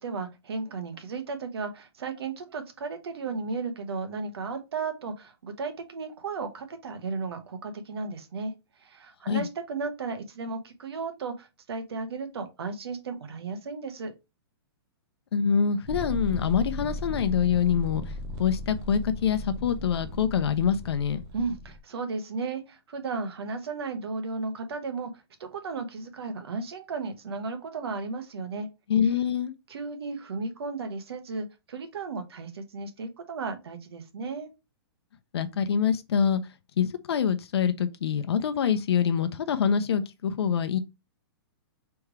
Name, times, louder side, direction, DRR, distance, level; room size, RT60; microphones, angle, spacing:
voice 1, 0.0-8.5 8.8-14.1 21.3-25.1 25.4-28.7 29.7-34.5, right 4 dB, 75° right, 1.2 m, -34 dB
voice 2, 15.3-18.0 18.4-21.2 28.9-29.5 35.3-36.4 36.8-40.8, left 7 dB, 80° left, 0.6 m, -25 dB
sound 1, 15.9-21.8, equal, 15° right, 0.4 m, -37 dB
3.4 x 3.2 x 4.7 m
hypercardioid pair, 175°, 13 cm